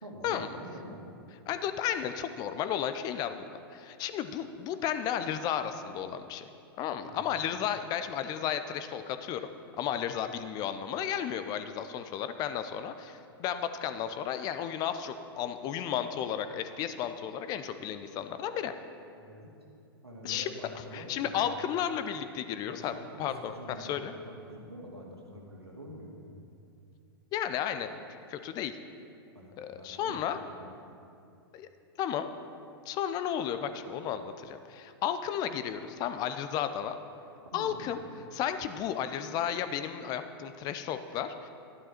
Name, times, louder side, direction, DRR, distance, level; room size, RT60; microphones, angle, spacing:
voice 1, 0.0-1.1 7.0-7.4 19.2-19.5 20.0-21.5 22.7-26.5 29.3-30.7 37.4-38.0, equal, 85° right, -1 dB, 2.2 m, -46 dB
voice 2, 1.5-6.5 6.8-9.5 9.8-18.7 20.2-20.5 20.9-24.1 27.3-28.0 28.3-28.8 29.6-30.4 31.5-31.7 32.0-32.3 32.9-37.0 37.5-38.0 38.3-41.5, left 9 dB, 30° left, 10 dB, 0.6 m, -33 dB
12.5 x 11.0 x 4.4 m, 2.5 s
figure-of-eight pair, 105°, 13 cm